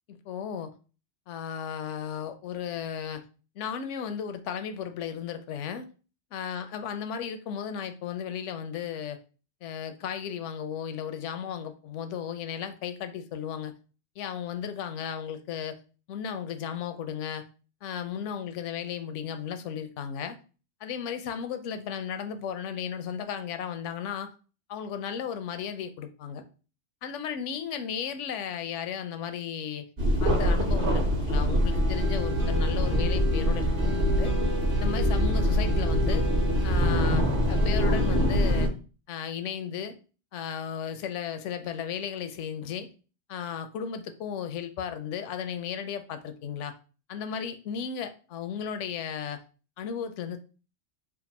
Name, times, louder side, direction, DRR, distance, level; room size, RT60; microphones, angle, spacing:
voice 1, 0.1-0.7 1.3-3.2 3.6-5.9 6.3-9.2 9.6-13.7 14.2-15.8 16.1-17.4 17.8-20.4 20.8-24.3 24.7-26.4 27.0-29.8 30.2-34.3 34.8-36.3 36.6-38.7 39.1-40.0 40.3-42.9 43.3-46.7 47.1-49.4 49.8-50.4, left 8 dB, 85° left, 9 dB, 0.9 m, -35 dB
sound 1, 30.0-38.7, equal, 50° right, 1.1 m, -24 dB
3.4 x 2.4 x 4.1 m, 0.35 s
omnidirectional pair, 1.2 m